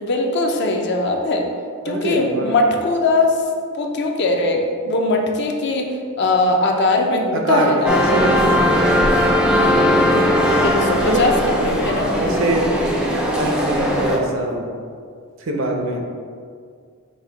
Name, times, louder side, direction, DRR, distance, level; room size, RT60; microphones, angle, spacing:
voice 1, 0.0-1.5 1.8-3.4 3.7-8.0 9.9-10.2 10.6-12.4, left 2 dB, 50° left, 2 dB, 0.5 m, -20 dB
voice 2, 1.8-2.5 7.3-9.1 11.1-11.3 12.1-12.6 13.3-14.6 15.4-16.0, right 2 dB, 60° right, 1 dB, 0.6 m, -23 dB
sound 1, 7.9-14.2, equal, 5° right, 0.4 m, -18 dB
5.3 x 2.1 x 4.5 m, 2.1 s
head